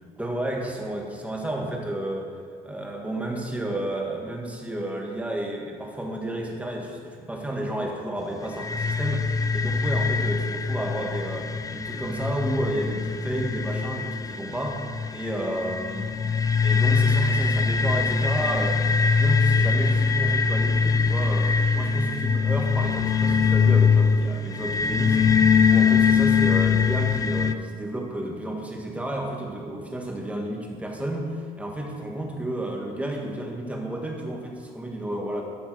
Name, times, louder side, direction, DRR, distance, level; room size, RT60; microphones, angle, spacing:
voice 1, 0.2-2.4 2.6-25.2 25.6-31.3 31.6-35.4, right 1 dB, 10° right, -1 dB, 1.5 m, -31 dB
sound 1, 8.6-27.5, left 5 dB, 20° left, 0.4 m, -22 dB
12.5 x 5.5 x 4.7 m, 2.1 s
cardioid pair, 110°, 17 cm